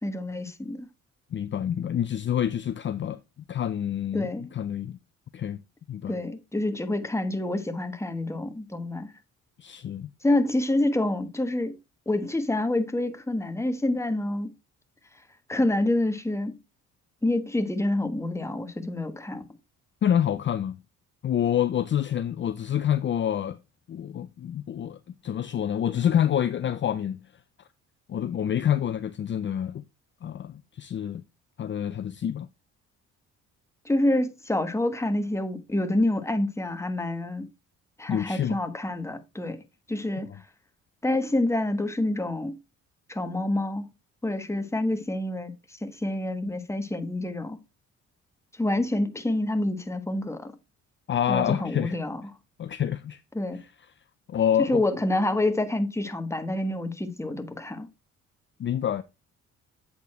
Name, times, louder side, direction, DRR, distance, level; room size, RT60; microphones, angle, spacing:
voice 1, 0.0-0.9 4.1-4.5 6.1-9.1 10.2-11.8 12.1-14.5 15.5-16.5 17.2-19.4 33.8-37.5 38.0-39.6 39.9-40.3 41.0-42.6 43.1-43.9 44.2-47.6 48.5-50.5 51.3-52.2 53.3-53.6 54.6-57.9, left 1 dB, 10° left, 1.2 m, -27 dB
voice 2, 1.3-3.2 3.5-5.0 5.3-5.6 5.9-6.2 9.6-10.1 20.0-20.8 21.2-23.6 23.9-27.2 28.1-29.8 30.2-31.2 31.6-32.5 38.1-38.6 51.1-52.0 52.6-53.2 53.5-53.6 54.3-54.8 58.6-59.0, left 9 dB, 40° left, 0.5 m, -27 dB
8.2 x 4.4 x 4.2 m
cardioid pair, 90°, 30 cm